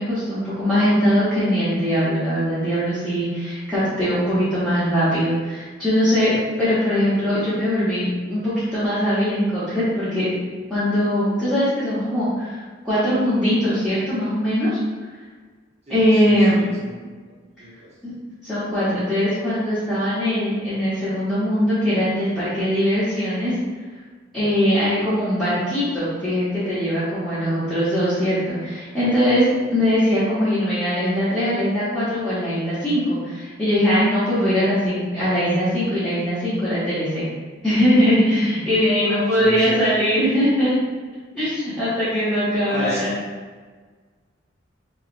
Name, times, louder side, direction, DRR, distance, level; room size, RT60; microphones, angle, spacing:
voice 1, 0.0-10.3 10.7-14.8 15.9-16.6 18.0-18.1 18.4-23.5 24.3-37.2 37.6-40.7 41.3-43.1, equal, ahead, -16 dB, 1.1 m, -21 dB
voice 2, 15.9-16.9 17.6-17.9 39.0-39.8 42.6-43.0, equal, 35° right, -6 dB, 0.8 m, -34 dB
4.2 x 3.0 x 2.5 m, 1.4 s
head